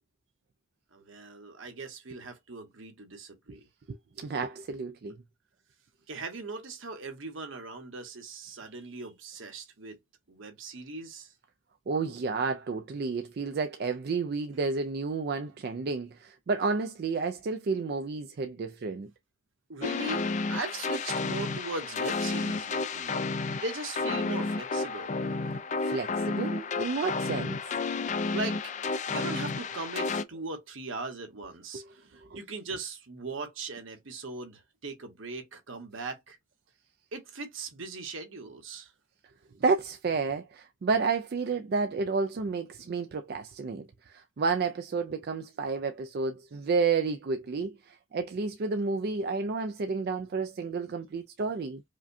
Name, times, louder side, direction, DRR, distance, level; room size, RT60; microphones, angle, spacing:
voice 1, 0.9-3.6 6.1-10.0 10.3-11.3 19.7-25.2 28.3-28.7 29.1-36.4 37.1-38.9, right 3 dB, 65° right, 1.1 m, -39 dB
voice 2, 3.9-5.2 11.9-19.1 25.8-27.6 31.7-31.9 32.2-32.4 39.6-51.8, right 4 dB, 45° right, 0.3 m, -31 dB
sound 1, 19.8-30.2, left 4 dB, 35° left, 0.3 m, -31 dB
4.9 x 2.2 x 2.6 m
head